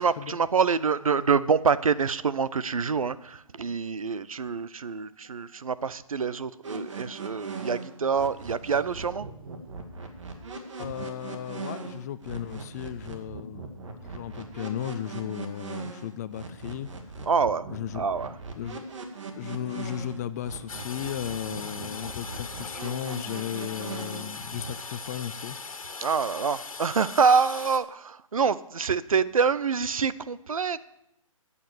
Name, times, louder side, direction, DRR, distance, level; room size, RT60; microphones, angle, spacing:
voice 1, 0.0-9.3 17.3-17.7 17.9-18.3 26.0-30.8, right 5 dB, 75° right, 16 dB, 0.7 m, -26 dB
sound 1, 6.6-24.4, right 4 dB, 60° right, 2.1 m, -40 dB
voice 2, 10.8-13.7 14.0-16.9 17.7-18.1 18.6-18.8 19.3-25.6, left 10 dB, 30° left, 15 dB, 0.5 m, -35 dB
Toilet flush, 20.7-27.8, left 4 dB, 75° left, 1.6 m, -40 dB
12.0 x 8.4 x 7.1 m, 0.81 s
figure-of-eight pair, 140°, 18 cm